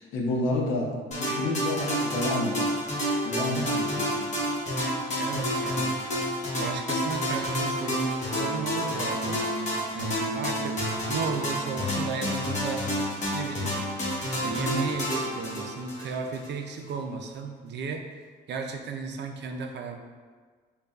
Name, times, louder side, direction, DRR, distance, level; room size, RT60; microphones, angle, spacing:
voice 1, 0.0-2.8 3.2-4.4, left 2 dB, 90° left, 0 dB, 0.7 m, -30 dB
sound 1, 1.1-16.5, equal, 35° left, 1.1 m, -29 dB
voice 2, 5.2-6.0 6.5-9.4 9.9-12.9 13.3-13.8 14.3-18.1 18.5-20.0, right 5 dB, 60° right, 4 dB, 0.5 m, -34 dB
5.1 x 2.3 x 2.3 m, 1.5 s
cardioid pair, 90°, 20 cm